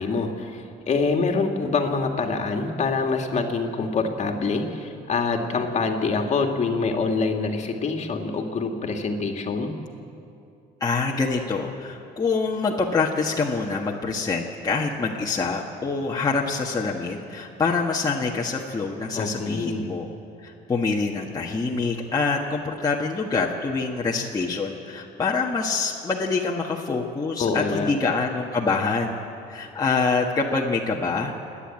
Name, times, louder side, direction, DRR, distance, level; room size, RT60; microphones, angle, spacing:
voice 1, 0.0-9.7 19.1-19.9 27.4-27.9, left 4 dB, 40° left, 3 dB, 2.1 m, -25 dB
voice 2, 10.8-20.1 20.4-29.1 29.5-31.3, left 4 dB, 20° left, -2 dB, 1.6 m, -25 dB
29.5 x 10.0 x 8.9 m, 2.7 s
cardioid pair, 110°, 17 cm